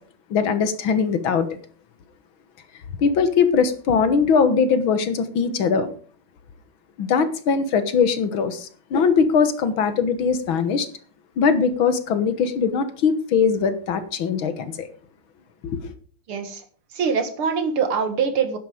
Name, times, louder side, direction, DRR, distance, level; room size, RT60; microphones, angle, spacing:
voice 1, 0.3-1.5 3.0-5.9 7.0-10.9 11.4-14.9 15.6-15.9, left 5 dB, 70° left, 11 dB, 2.1 m, -21 dB
voice 2, 16.3-16.6 16.9-18.6, right 6 dB, 85° right, 8 dB, 2.7 m, -23 dB
11.5 x 10.0 x 5.0 m, 0.42 s
omnidirectional pair, 2.3 m